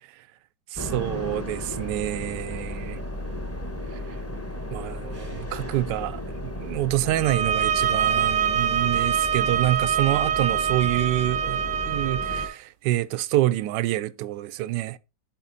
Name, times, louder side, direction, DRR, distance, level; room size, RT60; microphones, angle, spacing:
sound 1, 0.7-12.5, left 1 dB, 10° left, 1.0 m, -34 dB
voice 1, 0.7-3.0 3.9-4.0 4.7-15.0, right 15 dB, 80° right, 1.2 m, -27 dB
sound 2, 7.2-12.5, right 8 dB, 60° right, 0.8 m, -25 dB
12.0 x 4.4 x 4.1 m
omnidirectional pair, 1.9 m